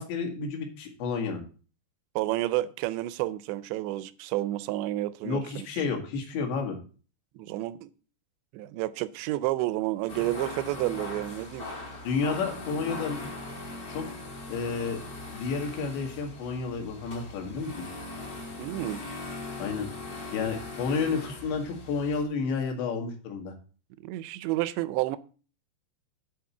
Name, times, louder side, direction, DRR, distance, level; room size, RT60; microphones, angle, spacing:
voice 1, 0.0-1.4 5.2-6.8 12.0-13.2 13.9-14.2 14.5-15.0 15.3-17.7 19.6-19.9 20.3-23.5, left 5 dB, 80° left, 4.0 m, -31 dB
voice 2, 2.2-5.7 7.4-7.9 8.5-11.7 18.6-19.0 24.0-25.2, right 16 dB, 85° right, 2.8 m, -30 dB
sound 1, 10.1-22.2, left 2 dB, 55° left, 0.9 m, -40 dB
10.5 x 4.3 x 7.0 m
omnidirectional pair, 5.0 m